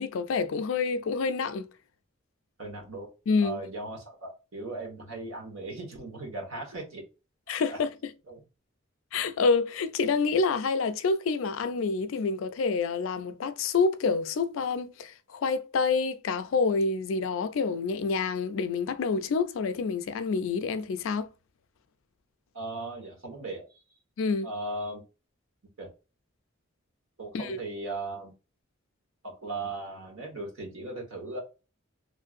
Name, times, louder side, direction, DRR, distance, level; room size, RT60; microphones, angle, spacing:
voice 1, 0.0-1.7 3.3-3.6 7.5-7.9 9.1-21.3 24.2-24.5 27.3-27.6, left 4 dB, 75° left, 0.4 m, -27 dB
voice 2, 2.6-3.1 3.4-7.0 7.5-7.8 8.3-8.4 22.5-23.6 24.4-25.0 25.8-25.9 27.2-28.3 29.2-31.4, right 2 dB, 90° right, 1.3 m, -37 dB
3.1 x 2.6 x 2.4 m
head